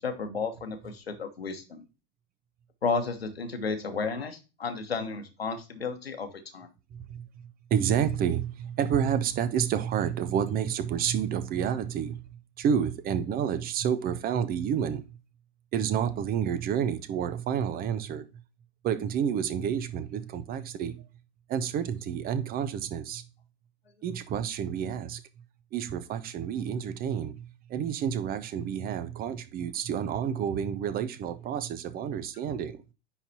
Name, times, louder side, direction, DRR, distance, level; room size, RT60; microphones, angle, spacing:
voice 1, 0.0-1.8 2.8-6.7, left 4 dB, 85° left, 1.2 m, -33 dB
voice 2, 6.9-7.3 7.7-12.2 12.6-15.2 15.7-18.2 18.8-21.0 21.5-23.2 24.0-25.2 25.7-32.8, right 8 dB, 30° right, 0.7 m, -29 dB
9.8 x 4.0 x 2.8 m
figure-of-eight pair, 90°, 30 cm